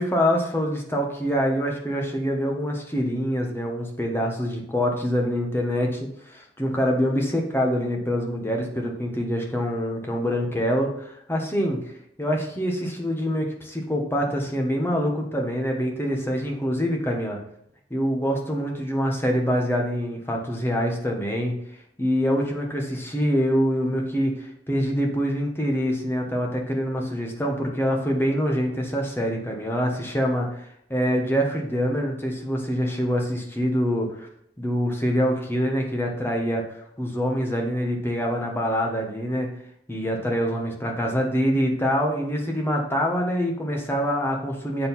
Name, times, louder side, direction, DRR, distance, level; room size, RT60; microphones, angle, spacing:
voice 1, 0.0-11.8 12.2-17.4 17.9-21.5 22.0-34.3 34.6-36.6 37.0-39.5 39.9-44.9, equal, 15° left, 1 dB, 1.2 m, -25 dB
7.5 x 4.7 x 5.6 m, 0.71 s
head